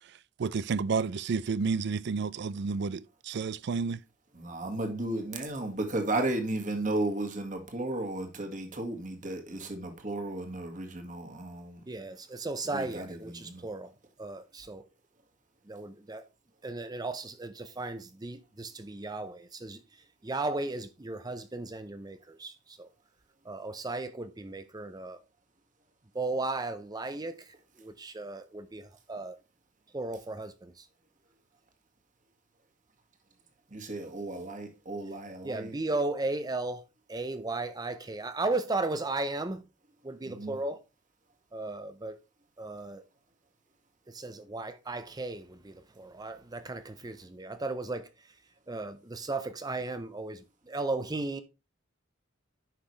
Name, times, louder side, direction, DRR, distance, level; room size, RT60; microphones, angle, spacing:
voice 1, 0.4-4.0, right 5 dB, 60° right, 0.4 m, -30 dB
voice 2, 4.3-11.8 12.7-13.6 33.7-35.7 40.3-40.6, right 2 dB, 40° right, 1.9 m, -34 dB
voice 3, 11.9-13.9 14.2-14.8 15.7-16.2 16.6-19.8 20.2-22.9 23.5-25.2 26.1-27.4 27.8-29.4 29.9-30.8 35.4-36.8 37.1-39.6 40.0-40.8 41.5-42.2 42.6-43.0 44.1-48.1 48.7-51.4, right 2 dB, 20° right, 0.6 m, -35 dB
10.0 x 5.8 x 3.2 m
head